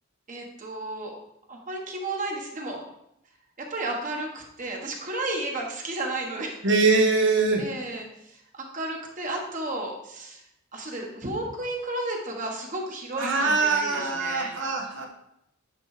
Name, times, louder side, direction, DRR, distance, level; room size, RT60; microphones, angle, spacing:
voice 1, 0.3-1.1 1.5-2.8 3.6-6.6 7.6-10.4 10.7-14.5, right 2 dB, 40° right, 0 dB, 1.4 m, -33 dB
voice 2, 6.6-7.7 13.1-15.1, right 3 dB, 65° right, 2 dB, 1.3 m, -23 dB
10.0 x 3.4 x 5.0 m, 0.78 s
head